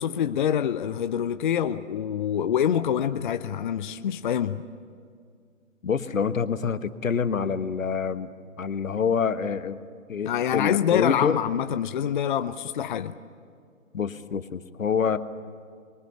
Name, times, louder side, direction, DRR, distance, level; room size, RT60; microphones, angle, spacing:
voice 1, 0.0-4.6 10.3-13.1, left 9 dB, 40° left, 11 dB, 0.6 m, -26 dB
voice 2, 5.8-8.3 8.6-9.8 10.1-11.4 13.9-15.2, left 6 dB, 70° left, 11 dB, 1.4 m, -26 dB
26.0 x 23.0 x 8.1 m, 2.2 s
figure-of-eight pair, 135°, 41 cm